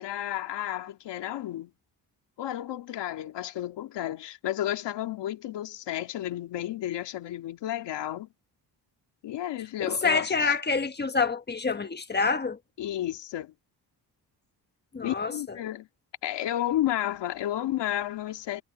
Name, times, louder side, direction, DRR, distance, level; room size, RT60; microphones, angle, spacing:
voice 1, 0.0-1.7 2.4-8.3 9.2-10.5 12.8-13.5 15.0-15.9 16.2-18.6, left 13 dB, 85° left, 2.3 m, -32 dB
voice 2, 9.8-12.6 14.9-15.6, left 4 dB, 25° left, 1.3 m, -27 dB
cardioid pair, 125°, 41 cm